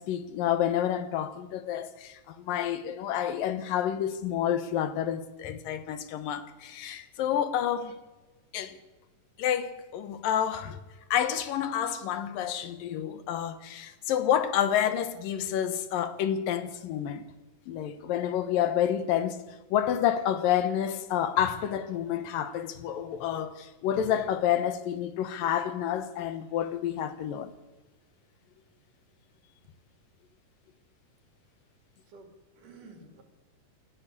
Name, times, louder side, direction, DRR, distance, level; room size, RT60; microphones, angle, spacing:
voice 1, 0.0-8.0 8.5-8.8 9.4-10.8 11.1-17.3 17.7-27.5, left 10 dB, 80° left, 2.9 m, -29 dB
voice 2, 32.0-33.2, right 3 dB, 65° right, 4.4 m, -52 dB
28.5 x 11.0 x 8.5 m
omnidirectional pair, 4.0 m